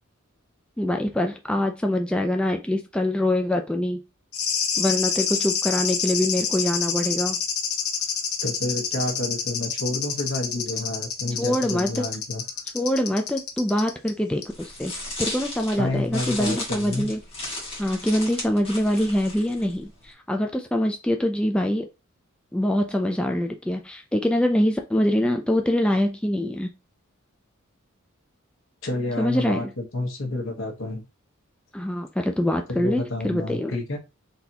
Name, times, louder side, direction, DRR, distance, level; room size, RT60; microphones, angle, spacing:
voice 1, 0.8-4.0 4.8-7.4 11.4-12.0 12.7-14.9 15.2-17.2 17.8-21.9 22.5-26.7 29.2-29.7 31.7-33.8, left 1 dB, 5° left, 4 dB, 0.4 m, -24 dB
sound 1, 4.3-14.1 14.4-14.5, left 7 dB, 80° left, 0.8 m, -28 dB
voice 2, 8.4-12.4 15.8-17.1 28.8-31.0 32.8-34.0, left 2 dB, 65° left, 2 dB, 1.3 m, -29 dB
sound 2, 14.5-20.1, left 2 dB, 30° left, 1.8 m, -35 dB
4.0 x 3.4 x 2.8 m, 0.27 s
head